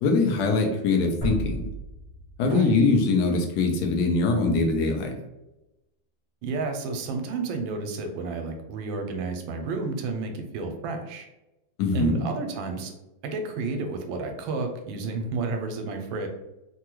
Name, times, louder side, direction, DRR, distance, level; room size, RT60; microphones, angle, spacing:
voice 1, 0.0-1.6 2.4-5.1 11.8-12.2, left 3 dB, 70° left, 3 dB, 1.1 m, -22 dB
sound 1, 1.2-4.0, equal, 25° left, 0.7 m, -34 dB
voice 2, 6.4-11.3 11.9-12.9 13.2-16.3, right 3 dB, 85° right, 5 dB, 1.3 m, -31 dB
3.5 x 2.2 x 2.9 m, 0.97 s
omnidirectional pair, 2.1 m